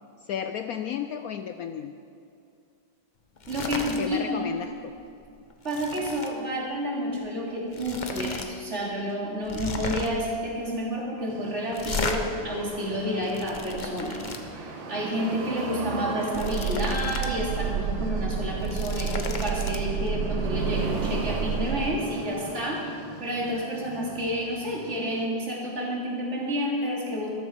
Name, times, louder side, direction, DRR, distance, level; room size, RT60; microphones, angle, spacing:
voice 1, 0.2-2.0 4.0-4.9, left 8 dB, 80° left, 8 dB, 0.8 m, -33 dB
sound 1, 3.4-4.0 4.4-4.6 5.0-6.3 7.3-7.4 7.7-8.5 8.8-8.9 9.4-10.3 11.7-12.2 13.0-14.4 16.0-17.3 17.7-17.8 18.5-19.8, left 4 dB, 35° left, 0.7 m, -34 dB
voice 2, 3.5-4.5 5.6-14.2 14.5-22.9 23.2-27.3, equal, 35° right, -3 dB, 3.0 m, -30 dB
sound 2, 11.3-25.3, right 4 dB, 80° right, 2.0 m, -36 dB
sound 3, 16.3-22.0, right 7 dB, 60° right, 0.9 m, -30 dB
13.5 x 13.5 x 5.1 m, 2.5 s
omnidirectional pair, 2.1 m